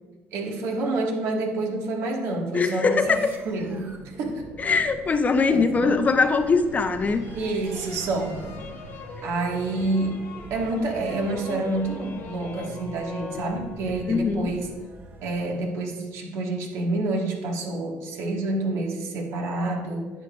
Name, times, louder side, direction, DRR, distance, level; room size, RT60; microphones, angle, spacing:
voice 1, 0.3-3.2 3.5-4.5 5.5-5.9 7.3-8.5 9.2-14.7 15.2-20.1, right 2 dB, 70° right, 0 dB, 1.8 m, -28 dB
voice 2, 2.5-3.3 4.6-7.3 14.1-14.5, left 4 dB, 30° left, 9 dB, 0.7 m, -22 dB
sound 1, 3.0-15.6, right 2 dB, 45° right, 1.3 m, -43 dB
sound 2, 7.0-14.2, left 4 dB, 50° left, 1.4 m, -41 dB
10.0 x 7.1 x 2.5 m, 1.2 s
supercardioid pair, 85°, 5 cm